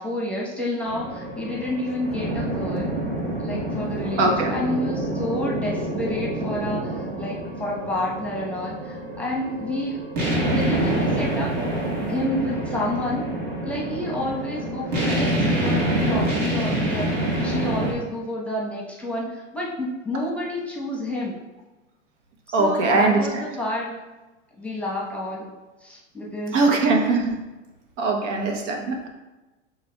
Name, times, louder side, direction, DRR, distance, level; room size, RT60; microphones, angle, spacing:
voice 1, 0.0-2.9 3.4-11.6 12.1-13.3 13.6-21.3 22.5-24.0 24.6-25.5 25.8-26.6, left 1 dB, 5° left, -4 dB, 1.0 m, -29 dB
sound 1, 0.8-17.9, right 1 dB, 45° right, 1.5 m, -27 dB
voice 2, 4.2-4.5 22.5-23.3 26.5-27.4 28.0-29.1, right 3 dB, 70° right, 2 dB, 1.0 m, -21 dB
6.7 x 3.3 x 2.3 m, 1.1 s
hypercardioid pair, 100°, 38 cm